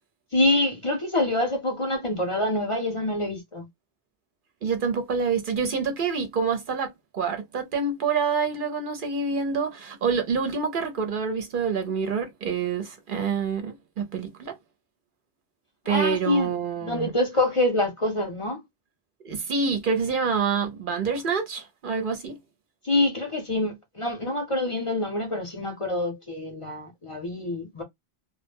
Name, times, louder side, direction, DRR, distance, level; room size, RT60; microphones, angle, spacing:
voice 1, 0.3-3.7 15.9-18.6 22.8-27.8, left 1 dB, 35° left, 0.6 m, -26 dB
voice 2, 4.6-14.6 15.9-17.1 19.2-22.4, right 5 dB, 60° right, 0.7 m, -27 dB
2.1 x 2.0 x 3.3 m
omnidirectional pair, 1.1 m